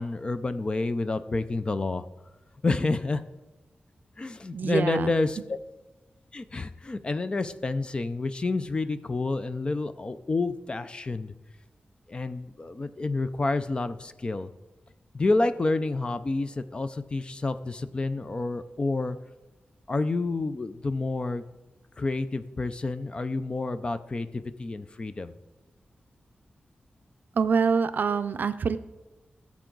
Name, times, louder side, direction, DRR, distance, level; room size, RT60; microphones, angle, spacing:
voice 1, 0.0-2.0 2.6-3.2 4.2-5.6 6.3-11.3 12.1-14.5 15.1-19.2 19.9-21.4 22.0-25.3, left 3 dB, 30° left, 12 dB, 0.4 m, -29 dB
voice 2, 4.5-5.1 27.3-28.8, right 5 dB, 65° right, 12 dB, 0.5 m, -25 dB
16.5 x 7.2 x 3.9 m, 1.1 s
wide cardioid pair, 180°, 3 cm